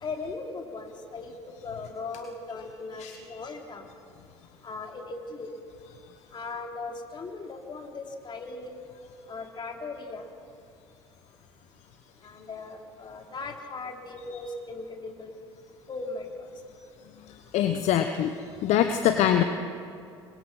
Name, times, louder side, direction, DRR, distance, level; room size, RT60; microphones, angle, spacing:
voice 1, 0.0-3.8 4.6-5.5 6.3-8.8 9.3-10.2 12.2-15.3 15.9-16.3, left 3 dB, 35° left, 2 dB, 3.4 m, -38 dB
voice 2, 17.5-18.3 18.6-19.4, left 10 dB, 55° left, 8 dB, 1.1 m, -23 dB
26.5 x 22.5 x 6.0 m, 2.4 s
figure-of-eight pair, 60°, 14 cm